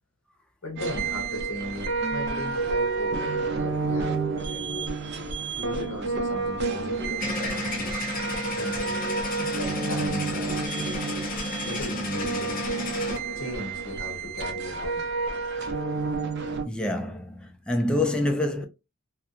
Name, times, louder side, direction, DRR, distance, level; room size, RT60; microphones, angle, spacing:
voice 1, 0.6-4.9 5.5-8.0 8.5-9.1 9.4-11.3 11.6-12.7 13.4-15.1, left 1 dB, 80° left, 1.2 m, -37 dB
sound 1, 0.8-16.6, right 4 dB, 55° right, 0.5 m, -30 dB
Singing, 2.0-6.3 6.6-12.6, right 3 dB, 80° right, 0.9 m, -42 dB
sound 2, 7.2-13.2, left 2 dB, 45° left, 0.7 m, -32 dB
voice 2, 16.7-18.6, left 1 dB, 5° left, 0.4 m, -26 dB
2.4 x 2.2 x 2.7 m
head